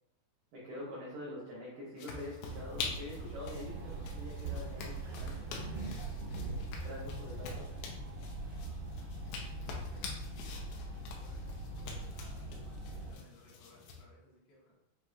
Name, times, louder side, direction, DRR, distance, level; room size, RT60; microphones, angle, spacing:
voice 1, 0.5-5.6 6.8-7.6, left 1 dB, 90° right, -5 dB, 1.7 m, -45 dB
sound 1, 2.0-14.0, left 4 dB, 90° left, 3.0 m, -46 dB
sound 2, 2.4-13.1, right 2 dB, 65° right, 1.3 m, -42 dB
voice 2, 2.9-3.3 3.9-4.2 6.4-6.6 7.2-7.8 8.6-9.2 9.5-10.6 11.1-14.8, left 2 dB, 70° left, -6 dB, 3.2 m, -64 dB
7.5 x 2.8 x 2.4 m, 0.89 s
omnidirectional pair, 5.2 m